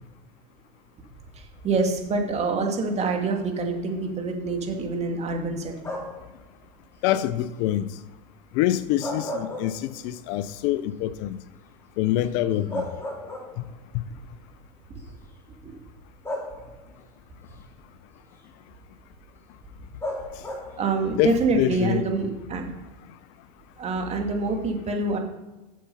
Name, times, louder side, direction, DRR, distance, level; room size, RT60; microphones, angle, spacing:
voice 1, 1.3-5.9 15.6-15.7 20.8-22.7 23.8-25.2, right 3 dB, 30° right, 2.1 m, -26 dB
sound 1, 5.8-6.3 8.8-10.2 10.6-10.7 12.2-12.3 12.7-13.8 14.9-15.0 16.2-17.0 20.0-20.9, left 1 dB, 10° left, 2.4 m, -34 dB
voice 2, 7.0-7.9 8.5-11.4 12.0-12.8 13.9-14.0 21.2-22.0, left 12 dB, 55° left, 0.5 m, -25 dB
7.5 x 6.9 x 5.4 m
hypercardioid pair, 100°, 21 cm